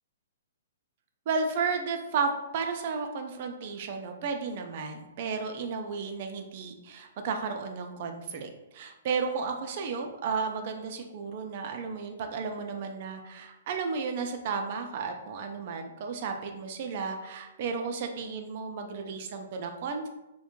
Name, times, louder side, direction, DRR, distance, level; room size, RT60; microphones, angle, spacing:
voice 1, 1.3-20.1, right 5 dB, 45° right, 5 dB, 0.4 m, -33 dB
2.5 x 2.1 x 2.8 m, 0.97 s
hypercardioid pair, 150°, 0 cm